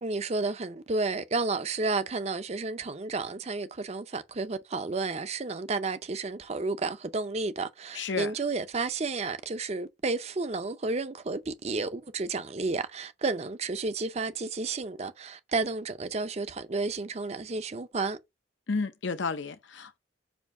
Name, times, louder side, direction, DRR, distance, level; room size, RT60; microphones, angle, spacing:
voice 1, 0.0-18.2, right 3 dB, 35° right, 0.5 m, -31 dB
voice 2, 7.9-8.3 18.7-20.0, left 4 dB, 75° left, 0.7 m, -31 dB
6.9 x 2.7 x 5.3 m
head